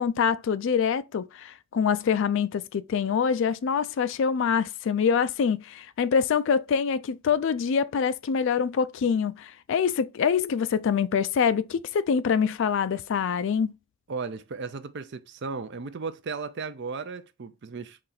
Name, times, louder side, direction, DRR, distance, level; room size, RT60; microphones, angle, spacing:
voice 1, 0.0-13.7, left 6 dB, 60° left, 0.3 m, -25 dB
voice 2, 14.1-18.0, right 4 dB, 55° right, 0.5 m, -35 dB
4.3 x 3.2 x 3.9 m
head